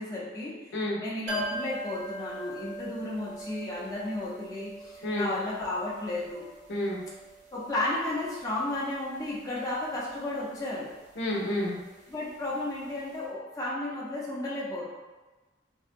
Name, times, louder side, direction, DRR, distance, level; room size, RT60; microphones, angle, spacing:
voice 1, 0.0-0.5 1.0-6.5 7.5-10.9 12.1-14.8, left 2 dB, 20° left, -7 dB, 0.5 m, -33 dB
sound 1, 1.3-12.9 13.1-13.2, right 2 dB, 40° right, 0.6 m, -44 dB
voice 2, 6.7-7.0 11.2-11.8, left 1 dB, 80° left, -4 dB, 0.7 m, -29 dB
3.5 x 2.1 x 2.5 m, 1.2 s
head